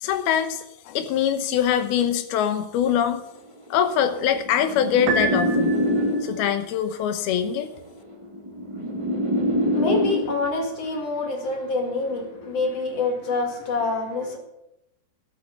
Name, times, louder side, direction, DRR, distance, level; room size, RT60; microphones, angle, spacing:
voice 1, 0.0-3.2 3.7-5.8 6.2-7.7, left 9 dB, 75° left, 9 dB, 2.6 m, -23 dB
sound 1, 3.6-6.6 7.6-10.6 11.6-12.0, equal, 20° right, 0.8 m, -25 dB
Piano, 5.1-6.3, right 3 dB, 85° right, 3.4 m, -28 dB
voice 2, 9.6-14.4, left 3 dB, 45° left, 2 dB, 2.4 m, -26 dB
13.5 x 8.5 x 6.9 m, 0.85 s
omnidirectional pair, 5.1 m